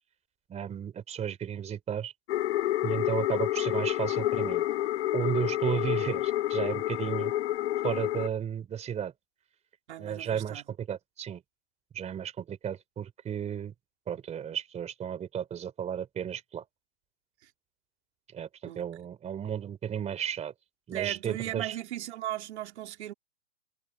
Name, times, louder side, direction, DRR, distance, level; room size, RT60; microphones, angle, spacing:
voice 1, 0.5-2.1 2.8-4.6 5.1-7.3 7.8-9.1 10.0-11.4 11.9-13.7 14.1-16.6 18.3-20.5 20.9-21.8, right 9 dB, 15° right, 3.6 m, -33 dB
sound 1, 2.3-8.3, left 14 dB, 55° left, 2.4 m, -29 dB
voice 2, 9.9-10.6 17.4-17.5 18.7-18.9 20.9-23.1, right 13 dB, 60° right, 2.5 m, -37 dB
hypercardioid pair, 130°, 38 cm